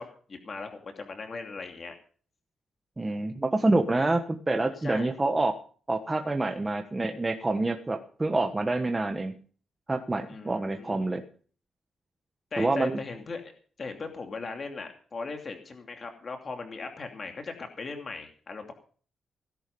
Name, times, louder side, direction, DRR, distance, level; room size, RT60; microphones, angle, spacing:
voice 1, 0.0-2.0 4.8-5.1 10.3-11.0 12.5-13.5 13.8-18.7, left 4 dB, 35° left, 4 dB, 2.7 m, -38 dB
voice 2, 3.0-5.5 5.9-9.3 9.9-11.2 12.6-13.0, right 2 dB, 15° right, 4 dB, 1.2 m, -27 dB
17.0 x 11.0 x 5.4 m, 0.43 s
wide cardioid pair, 150°, 0 cm